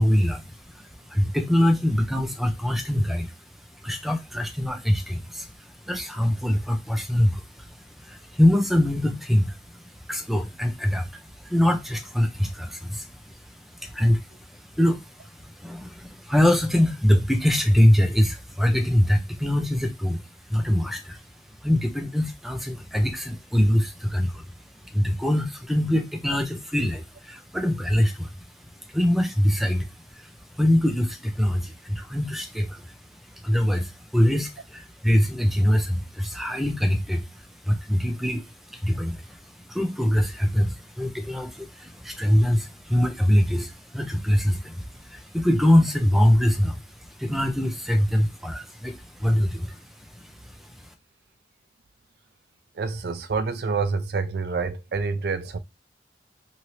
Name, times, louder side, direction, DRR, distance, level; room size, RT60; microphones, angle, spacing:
voice 1, 0.0-3.3 3.8-9.8 10.1-13.2 13.5-20.2 20.5-21.2 21.6-24.5 24.9-28.3 28.9-30.3 30.5-33.0 33.4-37.3 37.6-39.4 39.7-46.8 47.2-50.7, left 1 dB, ahead, 0.5 m, -23 dB
voice 2, 52.7-55.6, right 4 dB, 60° right, 0.4 m, -27 dB
2.8 x 2.7 x 3.1 m
head